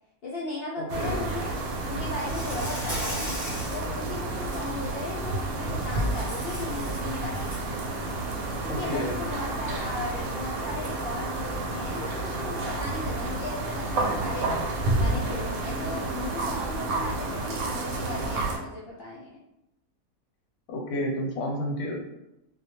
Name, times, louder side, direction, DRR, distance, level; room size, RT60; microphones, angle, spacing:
voice 1, 0.2-3.3 3.7-7.7 8.8-14.5 15.0-19.3, left 2 dB, 60° left, -6 dB, 0.6 m, -36 dB
voice 2, 0.8-1.3 8.7-9.2 20.7-22.0, equal, 85° left, 0 dB, 1.1 m, -31 dB
sound 1, 0.9-18.6, right 2 dB, 90° right, 1.0 m, -30 dB
Insect, 2.1-3.8 4.3-4.6 5.8-7.7, equal, 20° right, 0.9 m, -37 dB
2.2 x 2.2 x 2.8 m, 0.88 s
omnidirectional pair, 1.4 m